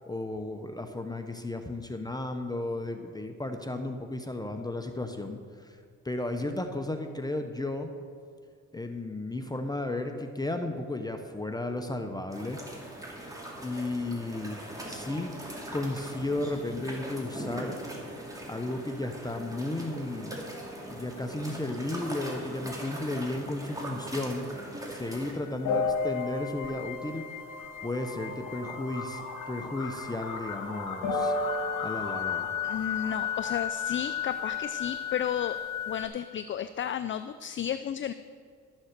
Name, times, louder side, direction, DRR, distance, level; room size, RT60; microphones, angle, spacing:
voice 1, 0.0-5.8 6.0-7.9 8.7-12.6 13.0-13.3 13.6-15.3 15.7-17.8 18.5-20.5 20.9-24.5 24.9-27.2 27.8-31.3 31.8-32.5, left 2 dB, 15° left, 6 dB, 0.8 m, -34 dB
sound 1, 12.3-25.3, right 1 dB, 10° right, 2.8 m, -40 dB
sound 2, 25.1-36.0, left 5 dB, 75° left, 1.5 m, -33 dB
voice 2, 32.6-35.6 35.9-38.1, left 9 dB, 40° left, 12 dB, 0.4 m, -33 dB
12.5 x 7.3 x 6.7 m, 2.3 s
cardioid pair, 90°, 30 cm